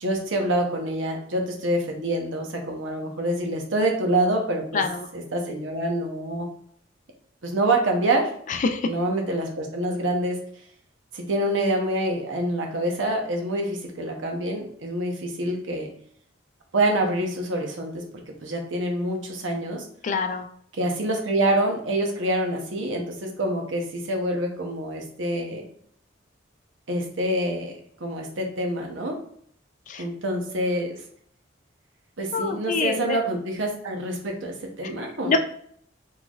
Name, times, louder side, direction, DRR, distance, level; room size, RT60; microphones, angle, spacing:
voice 1, 0.0-4.8 5.1-6.5 7.4-8.3 8.9-10.4 11.1-15.9 16.7-18.0 18.4-19.9 20.7-25.6 26.9-27.7 28.0-29.2 30.0-31.0 32.2-35.4, right 1 dB, 80° right, 2 dB, 0.8 m, -26 dB
voice 2, 4.7-5.1 8.5-8.9 20.0-20.5 29.9-30.0 32.3-33.2 34.8-34.9 35.3-35.4, left 4 dB, 40° left, 7 dB, 0.3 m, -25 dB
4.0 x 3.3 x 2.4 m, 0.64 s
head